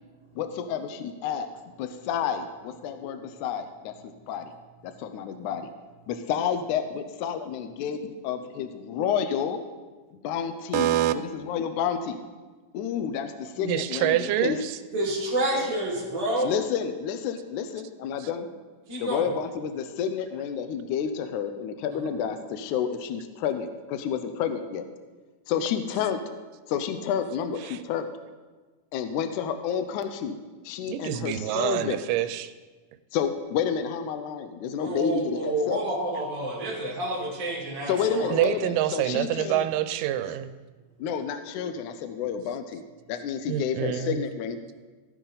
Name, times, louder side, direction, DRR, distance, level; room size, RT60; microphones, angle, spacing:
voice 1, 0.4-1.5 1.8-4.5 4.8-5.7 6.1-9.6 10.2-12.2 12.7-14.6 16.4-18.5 19.0-24.8 25.5-26.2 26.7-28.1 28.9-30.4 30.6-32.0 33.1-35.8 37.9-39.7 41.0-42.8 43.1-44.7, left 8 dB, 75° left, 9 dB, 1.9 m, -30 dB
voice 2, 10.7-11.1 13.6-14.8 18.2-18.3 27.6-27.8 30.9-32.5 38.3-40.5 43.5-44.2, right 12 dB, 85° right, 11 dB, 2.2 m, -26 dB
voice 3, 14.9-16.5 18.9-19.3 34.8-38.3, right 1 dB, 15° right, -4 dB, 1.7 m, -28 dB
14.5 x 9.1 x 3.9 m, 1.3 s
omnidirectional pair, 3.8 m